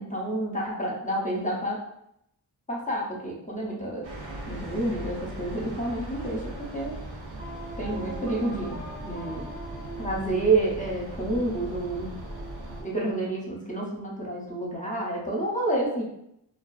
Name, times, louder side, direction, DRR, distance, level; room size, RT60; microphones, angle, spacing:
voice 1, 0.0-1.8 2.7-4.1 4.5-7.0 7.8-9.5 10.0-12.1 12.8-16.0, right 2 dB, 15° left, -3 dB, 0.6 m, -29 dB
sound 1, 4.0-12.8, right 1 dB, 70° right, 0.7 m, -39 dB
sound 2, 7.4-13.3, right 2 dB, 25° right, 0.7 m, -43 dB
2.4 x 2.3 x 2.3 m, 0.76 s
wide cardioid pair, 55°, 46 cm